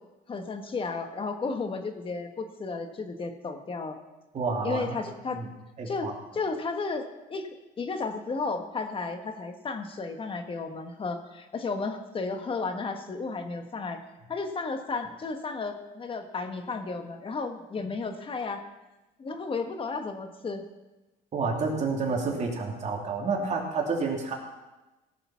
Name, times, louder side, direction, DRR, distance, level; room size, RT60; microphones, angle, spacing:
voice 1, 0.3-4.0 4.6-5.4 5.9-6.1 6.3-7.0 7.3-7.5 7.8-14.0 14.3-18.6 19.2-20.6, left 4 dB, 30° left, 6 dB, 1.4 m, -33 dB
voice 2, 4.3-5.0 5.3-5.5 5.8-6.1 21.3-24.3, right 4 dB, 40° right, 0 dB, 2.9 m, -29 dB
17.0 x 6.9 x 5.8 m, 1.1 s
cardioid pair, 110°, 17 cm